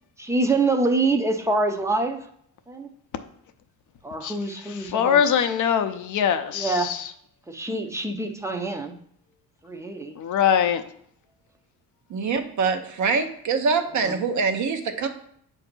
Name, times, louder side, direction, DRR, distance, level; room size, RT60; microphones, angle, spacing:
voice 1, 0.2-2.2 2.7-2.9 4.0-5.2 6.5-7.0 7.5-8.9 9.6-10.1 14.0-14.1, right 3 dB, 10° right, 5 dB, 0.6 m, -25 dB
voice 2, 4.9-7.0 10.2-10.8, left 8 dB, 55° left, 8 dB, 0.6 m, -22 dB
voice 3, 12.1-15.1, right 5 dB, 50° right, 6 dB, 0.8 m, -24 dB
7.7 x 2.7 x 5.9 m, 0.65 s
cardioid pair, 145°, 37 cm